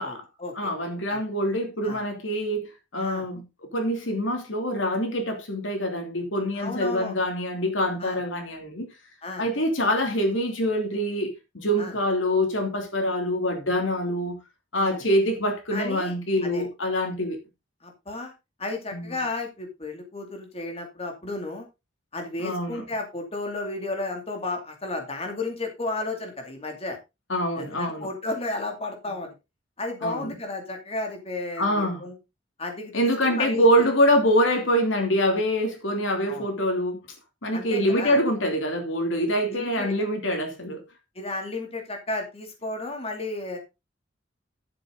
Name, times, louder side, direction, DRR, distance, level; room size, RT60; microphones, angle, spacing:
voice 1, 0.0-0.7 1.1-1.2 1.8-2.0 3.0-3.3 6.6-7.2 8.0-8.2 9.2-9.5 11.8-11.9 14.8-15.0 15.7-16.1 16.4-16.6 17.8-18.3 18.6-21.7 22.1-27.0 27.6-29.3 29.8-32.1 32.6-33.6 36.3-36.5 37.5-38.2 39.5-39.9 41.2-43.6, left 2 dB, 30° left, 2.7 m, -33 dB
voice 2, 0.5-2.7 2.9-8.9 9.4-14.4 14.7-17.4 18.9-19.2 22.4-22.8 27.3-28.1 30.0-30.3 31.6-32.0 32.9-37.0 37.4-40.8, equal, 85° left, 3.0 m, -25 dB
11.5 x 7.7 x 3.9 m
head